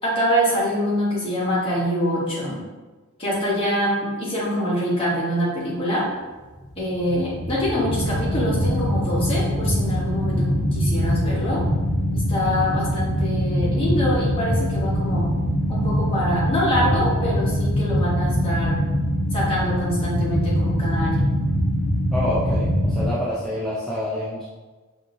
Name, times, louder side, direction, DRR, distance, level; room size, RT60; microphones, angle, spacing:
voice 1, 0.0-2.6 3.2-6.0 6.8-11.6 12.1-15.3 15.7-18.8 19.3-21.3, equal, 25° left, -7 dB, 1.2 m, -25 dB
sound 1, 6.7-23.1, equal, 40° right, 1.2 m, -23 dB
voice 2, 22.1-24.5, equal, ahead, -9 dB, 0.4 m, -27 dB
5.1 x 2.7 x 2.7 m, 1.3 s
head